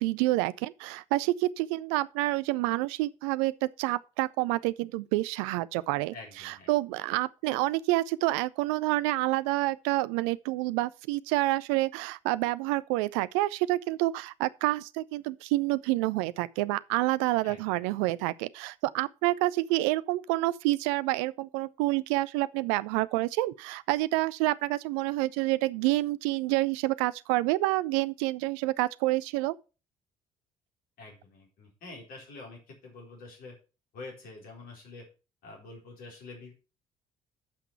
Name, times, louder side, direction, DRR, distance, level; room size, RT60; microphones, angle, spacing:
voice 1, 0.0-29.6, right 18 dB, 65° right, 0.5 m, -28 dB
voice 2, 6.1-6.7 17.4-17.8 31.0-33.5 33.9-35.1 35.4-36.5, left 3 dB, 55° left, 4.3 m, -46 dB
8.7 x 5.9 x 5.8 m
figure-of-eight pair, 50°, 18 cm